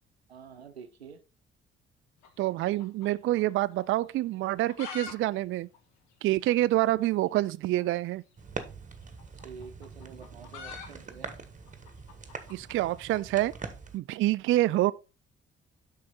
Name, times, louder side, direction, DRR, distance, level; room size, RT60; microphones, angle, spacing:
voice 1, 0.3-1.2 9.4-11.4, right 6 dB, 90° right, 0.7 m, -47 dB
sound 1, 2.2-3.5 3.8-3.9 4.4-5.1 5.4-5.5 5.7-5.8 6.4-6.5 7.7-7.9 9.0-13.2, left 6 dB, 65° left, 1.5 m, -45 dB
voice 2, 2.4-5.7 6.2-8.2 12.5-13.5 13.9-14.9, right 16 dB, 45° right, 0.4 m, -27 dB
sound 2, 8.4-14.0, right 4 dB, 25° right, 1.3 m, -43 dB
7.6 x 5.6 x 3.9 m
figure-of-eight pair, 45°, 31 cm